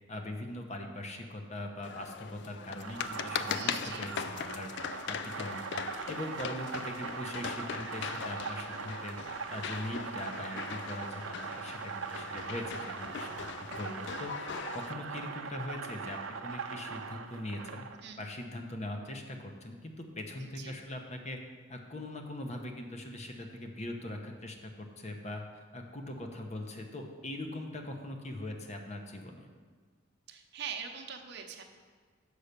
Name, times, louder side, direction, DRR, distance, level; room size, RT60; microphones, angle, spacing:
voice 1, 0.1-9.2 9.5-17.9 18.2-21.4 21.7-29.5, left 1 dB, 35° left, 4 dB, 0.8 m, -41 dB
sound 1, 1.8-14.9, left 7 dB, 60° left, 0.3 m, -40 dB
sound 2, 2.8-18.0, right 5 dB, 85° right, 0.6 m, -41 dB
voice 2, 3.5-4.1 18.0-18.2 20.4-20.7 30.3-31.6, right 7 dB, 55° right, 4 dB, 0.8 m, -42 dB
6.6 x 5.6 x 6.6 m, 1.5 s
head